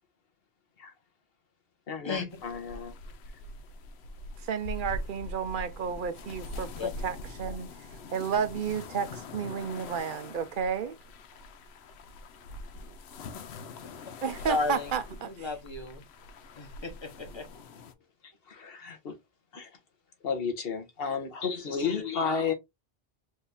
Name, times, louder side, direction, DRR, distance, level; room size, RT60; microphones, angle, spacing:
voice 1, 1.9-2.9 18.5-19.1 19.5-19.7 20.2-22.5, left 6 dB, 65° left, 1.3 m, -32 dB
sound 1, 2.3-17.9, left 2 dB, 85° left, 0.9 m, -43 dB
voice 2, 4.5-6.7 7.0-7.7 8.1-11.0 14.2-15.5, right 7 dB, 60° right, 0.7 m, -32 dB
voice 3, 14.5-14.9 15.2-16.0 16.6-17.5, left 3 dB, 25° left, 1.1 m, -33 dB
4.4 x 2.7 x 3.4 m
omnidirectional pair, 1.1 m